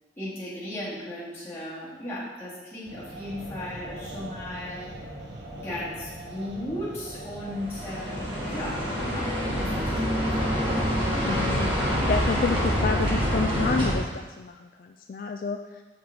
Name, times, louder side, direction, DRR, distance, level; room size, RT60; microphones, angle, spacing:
voice 1, 0.2-4.8 5.5-11.1, left 1 dB, 15° left, -10 dB, 2.7 m, -36 dB
sound 1, 2.8-12.8, right 1 dB, 85° right, 1.4 m, -42 dB
sound 2, 7.5-13.9, equal, 30° right, 2.0 m, -26 dB
voice 2, 11.2-15.8, left 4 dB, 50° left, 5 dB, 0.3 m, -30 dB
7.9 x 6.5 x 4.0 m, 1.3 s
head